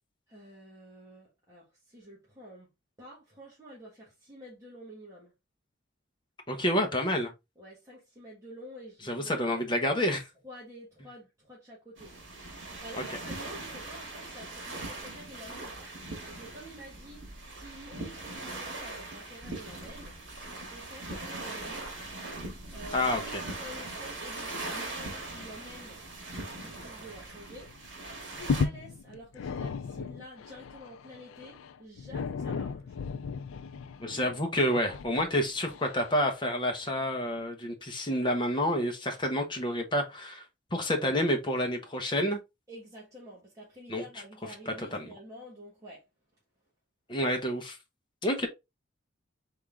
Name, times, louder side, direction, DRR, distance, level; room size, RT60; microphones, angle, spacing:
voice 1, 0.3-2.7 3.0-5.3 7.6-9.6 10.4-12.1 12.6-17.2 17.5-20.1 20.4-22.0 22.7-26.0 26.4-27.7 28.0-33.0 42.7-46.0, equal, 15° right, 1.4 m, -49 dB
voice 2, 6.5-7.3 9.1-10.3 12.9-13.0 22.9-23.4 34.0-40.4 40.7-42.4 43.9-44.0 44.7-45.1 47.1-47.8 48.2-48.5, equal, 25° left, 1.0 m, -29 dB
sound 1, 12.0-28.6, right 2 dB, 65° right, 1.9 m, -41 dB
sound 2, 27.6-27.8 28.1-36.8 37.4-37.5, left 5 dB, 80° left, 0.4 m, -36 dB
3.7 x 3.7 x 3.4 m
head